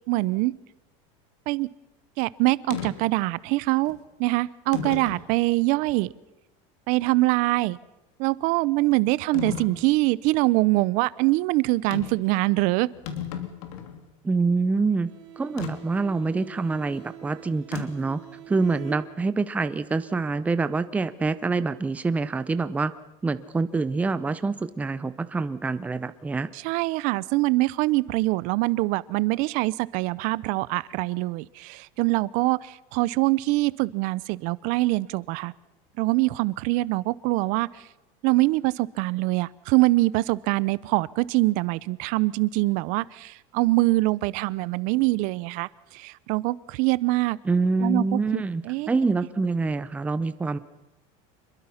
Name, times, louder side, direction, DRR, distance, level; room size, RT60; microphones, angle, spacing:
voice 1, 0.1-0.5 1.5-1.7 2.2-6.1 6.9-7.8 8.2-12.9 26.5-35.5 36.0-37.9 38.2-47.4 47.8-48.9, right 21 dB, 50° right, 20 dB, 0.7 m, -24 dB
sound 1, 2.7-2.9 3.9-4.0 4.7-5.3 5.9-6.0 9.3-9.8 11.9-12.3 12.6-12.7 12.9-14.0 15.6-15.7 17.7-18.1, left 8 dB, 70° left, 3.1 m, -34 dB
voice 2, 14.2-15.1 15.4-18.2 18.5-22.9 23.2-26.5 47.5-50.6, right 3 dB, 10° right, 12 dB, 0.7 m, -26 dB
Bowed string instrument, 15.0-19.6, right 13 dB, 70° right, 3.9 m, -45 dB
26.5 x 22.0 x 5.8 m, 1.0 s
cardioid pair, 160°, 17 cm